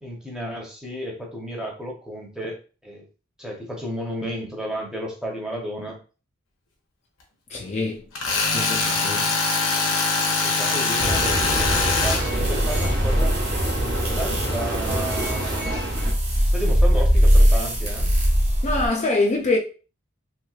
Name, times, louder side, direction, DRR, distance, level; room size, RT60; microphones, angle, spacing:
voice 1, 0.0-3.0 3.4-6.0 10.4-13.4 13.8-15.9 16.4-18.1, equal, 5° right, 0.8 m, -33 dB
voice 2, 7.5-8.0 8.5-9.3 18.6-19.6, left 2 dB, 35° left, 0.4 m, -24 dB
Tools, 8.2-12.2, left 3 dB, 80° left, 0.9 m, -22 dB
sound 1, 11.0-16.1, right 1 dB, 55° right, 0.8 m, -26 dB
sound 2, 11.1-18.9, equal, 30° right, 1.3 m, -22 dB
3.1 x 3.0 x 2.4 m
head